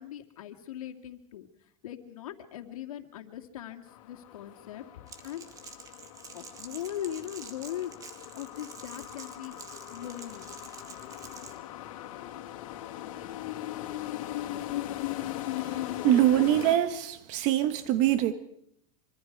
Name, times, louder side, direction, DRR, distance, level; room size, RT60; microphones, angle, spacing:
voice 1, 0.0-1.5 1.8-5.5 6.3-7.9 8.3-9.6 9.9-10.5, left 11 dB, 90° left, 4 dB, 2.5 m, -40 dB
sound 1, 3.9-16.8, left 14 dB, 70° left, 2.9 m, -39 dB
Crackle, 5.1-11.6, right 5 dB, 20° right, 2.3 m, -48 dB
voice 2, 16.0-18.3, right 13 dB, 45° right, 11 dB, 1.4 m, -23 dB
25.5 x 25.5 x 4.8 m, 0.74 s
supercardioid pair, 150°, 18 cm